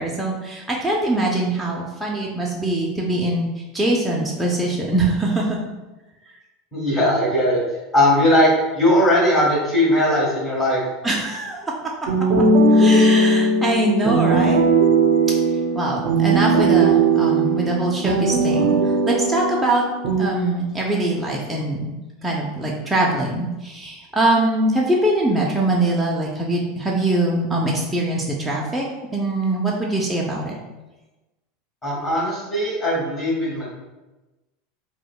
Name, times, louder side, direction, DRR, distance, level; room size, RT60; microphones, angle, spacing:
voice 1, 0.0-3.5 3.7-5.6 11.0-11.7 12.4-14.6 15.7-19.8 20.2-21.9 22.2-28.8 29.1-30.5, right 2 dB, 5° right, -4 dB, 0.4 m, -22 dB
voice 2, 6.7-7.6 7.9-10.8 31.8-33.7, left 1 dB, 15° left, -6 dB, 1.5 m, -19 dB
sound 1, 12.1-20.2, right 3 dB, 65° right, 0.4 m, -18 dB
4.8 x 2.1 x 2.2 m, 1.1 s
supercardioid pair, 135°, 0 cm